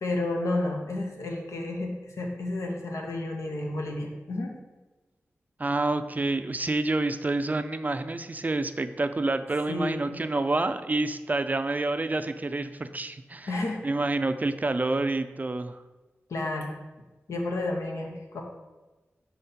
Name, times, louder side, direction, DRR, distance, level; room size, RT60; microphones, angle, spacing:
voice 1, 0.0-4.6 9.7-10.2 13.5-13.8 16.3-16.7 17.3-18.4, left 2 dB, 85° left, 1 dB, 0.9 m, -31 dB
voice 2, 5.6-13.5 13.8-15.8, right 2 dB, 35° right, 10 dB, 0.4 m, -28 dB
5.2 x 4.2 x 4.3 m, 1.2 s
cardioid pair, 45°, 5 cm